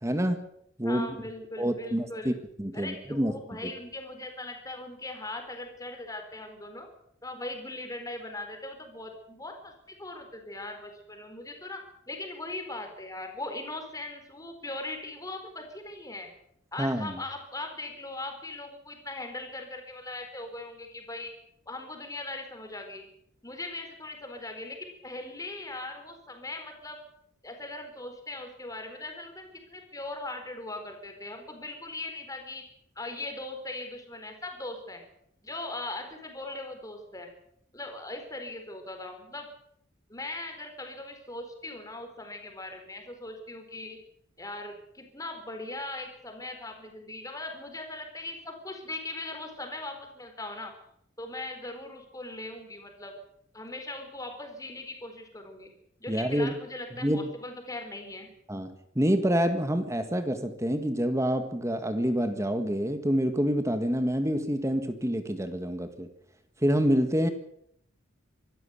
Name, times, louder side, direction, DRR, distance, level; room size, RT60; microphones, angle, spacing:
voice 1, 0.0-0.4 0.8-1.1 1.6-3.4 3.6-3.7 16.8-17.2 56.1-56.5 57.0-57.2 58.5-66.1 66.6-67.3, equal, 15° right, 9 dB, 1.6 m, -27 dB
voice 2, 0.8-2.4 2.7-6.9 7.2-16.3 16.7-21.3 21.7-23.1 23.4-27.0 27.4-32.6 33.0-35.0 35.4-37.3 37.7-39.5 40.1-44.0 44.4-50.7 51.2-53.1 53.5-55.7 56.0-58.3, left 2 dB, 15° left, 5 dB, 4.2 m, -39 dB
25.0 x 13.5 x 8.2 m, 0.72 s
head